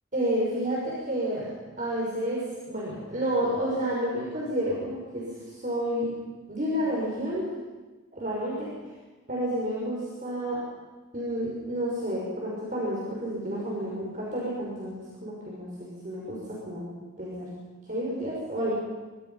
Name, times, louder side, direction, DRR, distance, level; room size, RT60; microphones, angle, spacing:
voice 1, 0.1-1.5 1.8-6.1 6.5-7.4 8.1-8.7 9.3-10.6 11.1-16.8 17.2-17.5 17.9-18.7, equal, 40° right, -5 dB, 6.1 m, -30 dB
25.5 x 24.5 x 5.8 m, 1.3 s
head